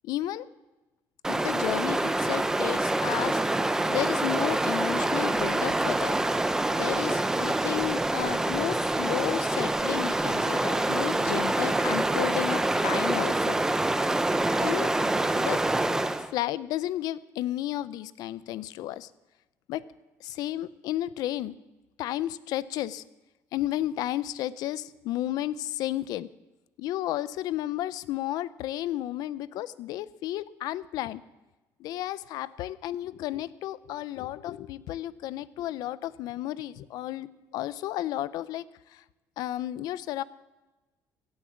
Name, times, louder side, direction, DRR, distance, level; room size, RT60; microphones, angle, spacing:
voice 1, 0.0-0.5 1.3-3.4 3.9-6.2 6.8-13.6 14.6-14.9 15.3-15.6 16.3-19.1 19.7-19.8 20.2-21.5 22.0-23.0 23.5-26.3 26.8-31.2 31.8-39.0 39.4-40.2, left 13 dB, 75° left, 17 dB, 0.6 m, -32 dB
Stream, 1.2-16.3, right 2 dB, 10° right, 0.6 m, -26 dB
16.5 x 8.8 x 7.1 m, 1.1 s
cardioid pair, 150°, 7 cm